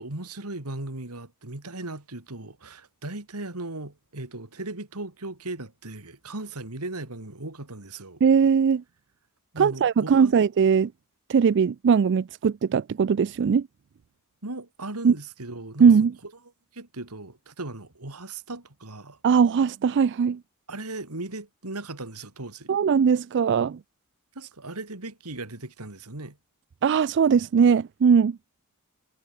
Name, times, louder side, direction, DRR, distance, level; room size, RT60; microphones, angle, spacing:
voice 1, 0.0-8.2 9.5-10.3 14.4-15.9 16.7-19.2 20.7-22.7 24.3-26.4, right 2 dB, 90° right, 3.1 m, -37 dB
voice 2, 8.2-8.8 9.6-10.9 11.3-13.7 15.0-15.1 15.8-16.1 19.2-20.4 22.7-23.8 26.8-28.4, right 6 dB, 55° right, 0.4 m, -20 dB
head